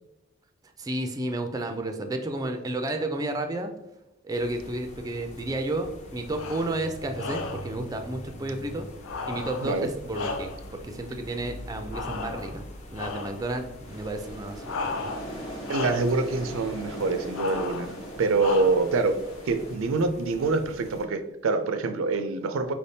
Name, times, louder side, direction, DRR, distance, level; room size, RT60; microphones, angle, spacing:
voice 1, 0.8-3.7 4.2-8.9 9.3-15.1, right 1 dB, 20° right, 6 dB, 0.3 m, -32 dB
sound 1, 4.3-21.0, equal, 35° left, 0.6 m, -45 dB
sound 2, 6.3-6.8 7.2-7.8 9.0-10.8 11.9-12.6 12.9-13.5 14.6-15.4 15.6-16.2 17.3-17.9 18.4-19.0, left 4 dB, 85° left, 0.4 m, -35 dB
sound 3, 13.9-19.8, equal, 65° left, 1.1 m, -40 dB
voice 2, 15.7-19.2 19.5-22.7, right 3 dB, 80° right, 8 dB, 0.4 m, -25 dB
4.6 x 3.4 x 2.7 m, 0.92 s
head